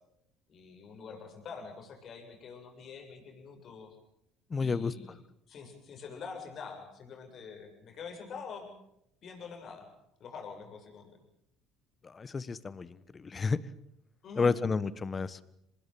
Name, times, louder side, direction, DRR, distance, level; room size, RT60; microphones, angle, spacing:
voice 1, 0.5-4.0 4.6-5.2 5.5-8.7 9.2-9.9 10.2-11.1 14.2-14.6, left 5 dB, 50° left, 4 dB, 7.5 m, -45 dB
voice 2, 4.5-4.9 12.0-13.6 14.4-15.4, left 4 dB, 30° left, 17 dB, 1.4 m, -31 dB
25.5 x 20.0 x 7.5 m, 0.78 s
supercardioid pair, 75°, 0 cm